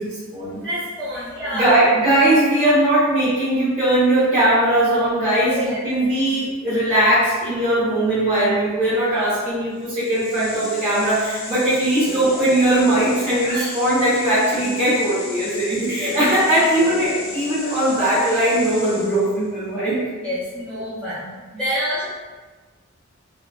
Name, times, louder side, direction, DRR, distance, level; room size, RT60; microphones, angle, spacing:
voice 1, 0.0-0.7 1.5-20.0, right 1 dB, 25° right, -16 dB, 1.1 m, -19 dB
voice 2, 0.6-1.8 5.6-5.8 13.5-13.7 16.0-16.3 20.2-22.1, equal, ahead, -13 dB, 1.2 m, -27 dB
sound 1, 9.8-19.4, left 2 dB, 80° left, 0.7 m, -34 dB
3.8 x 2.4 x 2.4 m, 1.4 s
head